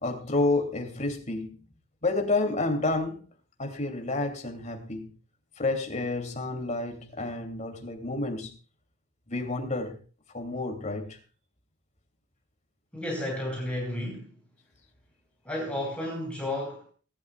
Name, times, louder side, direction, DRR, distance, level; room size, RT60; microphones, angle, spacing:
voice 1, 0.0-1.6 2.0-3.2 3.6-5.1 5.6-8.5 9.3-10.0 10.3-11.2, left 2 dB, 35° left, 2.6 m, -29 dB
voice 2, 12.9-14.3 15.4-16.9, left 1 dB, 5° left, 4.7 m, -32 dB
19.5 x 12.5 x 2.3 m
head